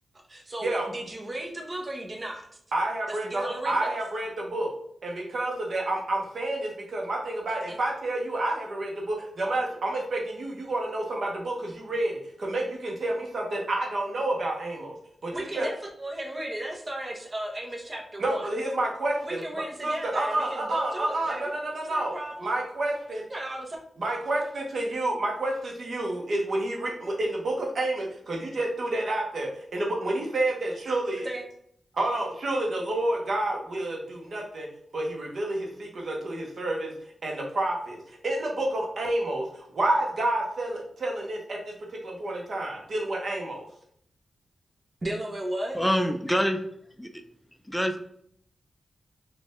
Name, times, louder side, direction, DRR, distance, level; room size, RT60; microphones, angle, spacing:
voice 1, 0.3-2.5 3.2-4.0 7.7-7.8 15.3-18.5 19.2-21.5 21.9-22.6 23.3-23.8 31.2-31.5 45.0-45.8, right 1 dB, 40° right, 1 dB, 1.1 m, -35 dB
voice 2, 2.7-4.7 5.0-15.0 15.2-15.7 18.2-22.1 22.4-23.2 24.0-31.3 31.9-34.7 34.9-36.9 37.2-41.7 42.0-43.7, right 1 dB, 70° right, 0 dB, 1.2 m, -29 dB
voice 3, 45.7-46.6 47.0-47.1 47.7-48.0, equal, 5° left, 5 dB, 0.4 m, -25 dB
4.3 x 2.7 x 3.6 m, 0.68 s
cardioid pair, 55°, 0 cm